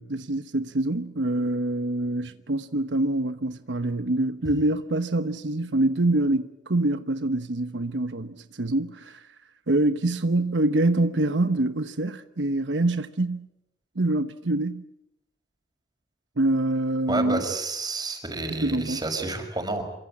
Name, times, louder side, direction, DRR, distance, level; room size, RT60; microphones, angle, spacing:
voice 1, 0.0-9.3 9.7-13.5 13.9-14.8 16.4-17.4 18.6-19.0, right 2 dB, 80° right, 1.1 m, -25 dB
voice 2, 17.1-19.8, right 3 dB, 25° right, 5.8 m, -29 dB
27.5 x 24.5 x 8.7 m
head